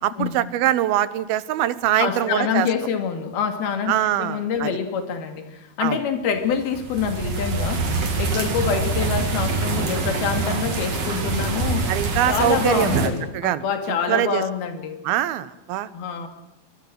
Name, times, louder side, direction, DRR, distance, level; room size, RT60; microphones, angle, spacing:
voice 1, 0.0-2.7 3.9-4.7 5.8-6.0 11.3-11.4 11.9-14.4 15.0-15.9, right 12 dB, 80° right, 16 dB, 3.0 m, -23 dB
voice 2, 2.0-3.9 4.2-7.9 8.2-11.9 12.3-15.0 15.9-16.3, left 7 dB, 85° left, 8 dB, 4.3 m, -26 dB
sound 1, 6.5-13.1, right 3 dB, 45° right, 4.2 m, -25 dB
23.5 x 23.0 x 7.8 m, 0.87 s
omnidirectional pair, 4.3 m